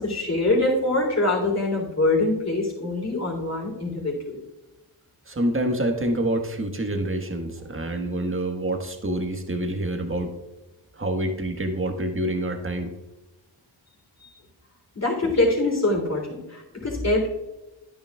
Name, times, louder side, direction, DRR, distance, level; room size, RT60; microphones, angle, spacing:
voice 1, 0.0-4.4 14.2-14.3 14.9-17.3, left 2 dB, 30° left, -1 dB, 3.4 m, -24 dB
voice 2, 5.3-10.3 11.0-12.9, right 1 dB, 25° right, 4 dB, 1.5 m, -27 dB
10.5 x 9.2 x 2.4 m, 1.0 s
cardioid pair, 50°, 49 cm